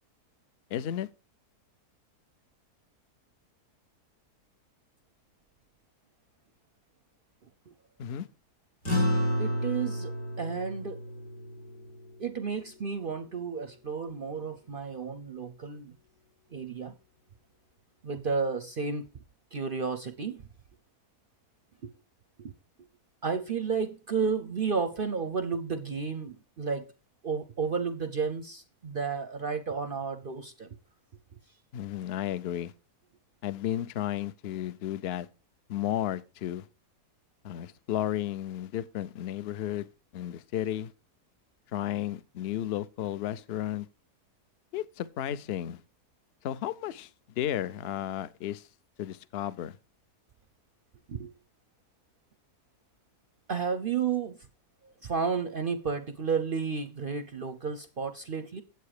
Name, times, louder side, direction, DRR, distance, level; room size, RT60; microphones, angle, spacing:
voice 1, 0.7-1.1 8.0-8.3 31.7-32.7 33.4-35.3 35.7-36.7 37.4-39.9 40.1-40.9 41.7-43.9 44.7-45.8 46.4-48.7 49.0-49.8, left 11 dB, 60° left, 0.7 m, -33 dB
sound 1, 8.8-13.5, equal, 80° left, 4.5 m, -32 dB
voice 2, 9.4-11.0 12.2-15.9 16.5-16.9 18.0-19.1 19.5-20.4 21.8-21.9 22.4-22.5 23.2-26.9 27.2-30.7 51.1-51.3 53.5-54.4 55.0-58.6, right 5 dB, 55° right, 0.6 m, -32 dB
9.5 x 7.9 x 4.8 m
omnidirectional pair, 1.7 m